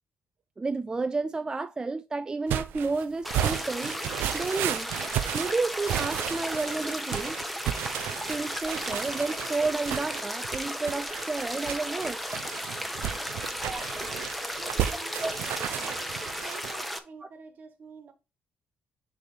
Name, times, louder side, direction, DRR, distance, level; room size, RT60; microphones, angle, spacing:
voice 1, 0.6-4.9 5.3-7.4 8.3-12.2 13.7-13.9 15.2-15.3, right 3 dB, 20° right, 0.4 m, -31 dB
sound 1, 2.5-16.8, right 12 dB, 90° right, 0.5 m, -34 dB
sound 2, 3.2-17.0, equal, ahead, 0.8 m, -35 dB
voice 2, 13.2-13.6 14.1-14.3 14.6-15.8 16.2-18.1, right 5 dB, 55° right, 1.4 m, -49 dB
6.6 x 3.3 x 4.3 m
cardioid pair, 100°, 4 cm